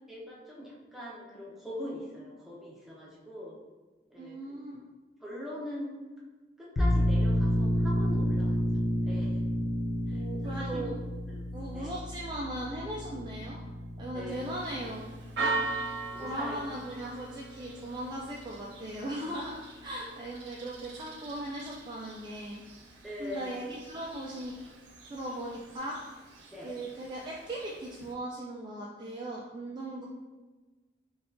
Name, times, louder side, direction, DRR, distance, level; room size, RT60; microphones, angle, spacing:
voice 1, 0.1-3.6 4.1-4.4 5.2-5.9 6.6-8.6 9.0-9.3 10.1-10.8 11.3-11.5 11.7-11.9 14.1-14.4 15.4-15.6 16.1-16.6 23.0-23.6 26.5-26.7, left 1 dB, ahead, -6 dB, 0.7 m, -42 dB
voice 2, 4.2-4.9 10.1-11.0 11.5-13.6 14.0-15.1 16.2-22.6 22.9-24.5 25.0-26.0 26.6-30.0, right 1 dB, 25° right, -4 dB, 0.3 m, -38 dB
sound 1, 6.8-18.1, equal, 45° left, 0.5 m, -31 dB
Church bell, 14.3-28.1, right 3 dB, 85° right, 0.5 m, -41 dB
4.3 x 2.3 x 2.5 m, 1.2 s
head